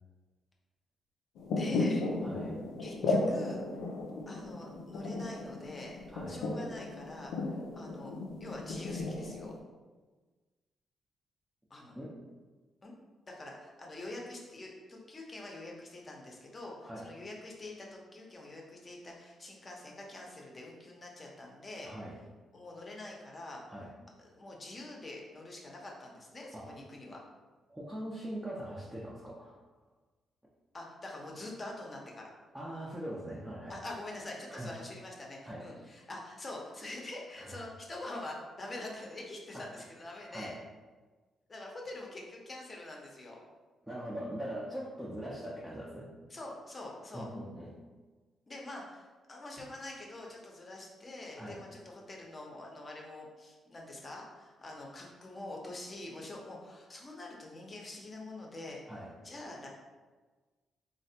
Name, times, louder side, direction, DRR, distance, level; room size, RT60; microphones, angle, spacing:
sound 1, 1.4-9.6, left 2 dB, 85° left, 0.4 m, -35 dB
voice 1, 1.5-2.0 2.8-3.6 4.3-6.0 6.3-9.6 11.7-12.0 12.8-12.9 13.3-21.9 22.5-23.6 24.2-27.2 30.7-32.3 33.7-40.6 41.5-43.4 46.3-47.3 48.5-58.8 59.2-59.7, left 2 dB, 35° left, -1 dB, 0.7 m, -45 dB
voice 2, 2.2-2.6 6.1-6.4 11.9-12.1 16.8-17.1 21.8-22.2 23.7-23.9 26.5-26.8 27.7-29.6 32.5-33.8 34.5-34.7 35.4-35.7 37.4-37.6 39.5-39.7 40.3-40.6 43.8-46.2 47.1-47.7 51.4-51.6 58.9-59.1, right 1 dB, 10° right, -6 dB, 0.5 m, -41 dB
3.2 x 2.1 x 2.7 m, 1.3 s
cardioid pair, 70°, 0 cm